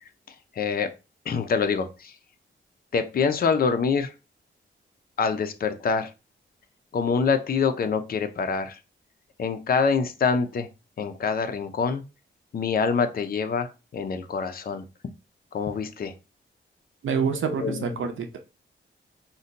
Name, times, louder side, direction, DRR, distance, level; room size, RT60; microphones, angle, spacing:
voice 1, 0.5-0.9 1.3-2.1 2.9-4.1 5.2-6.1 6.9-8.8 9.4-10.7 11.0-12.0 12.5-14.8 15.5-16.1 17.5-17.8, left 5 dB, 50° left, 0.5 m, -25 dB
voice 2, 17.0-18.4, right 6 dB, 80° right, 0.6 m, -27 dB
2.6 x 2.1 x 3.8 m
wide cardioid pair, 130°, 20 cm